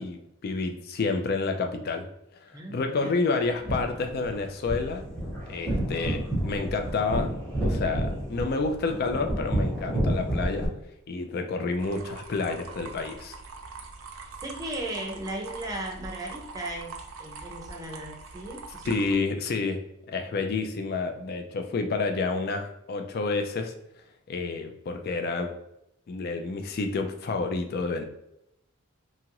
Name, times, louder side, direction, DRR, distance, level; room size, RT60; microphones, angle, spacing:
voice 1, 0.0-2.1 2.4-5.0 5.5-7.3 7.6-10.7 11.1-13.3 18.8-23.7 24.3-25.5 26.1-28.0, left 3 dB, 45° left, 6 dB, 0.3 m, -29 dB
voice 2, 2.5-3.1 14.4-16.9 17.2-19.0, right 1 dB, 15° right, 0 dB, 0.5 m, -36 dB
sound 1, 3.4-10.6, right 1 dB, 5° left, 0.9 m, -30 dB
sound 2, 11.8-19.1, right 4 dB, 70° right, 0.5 m, -43 dB
2.8 x 2.4 x 2.9 m, 0.81 s
head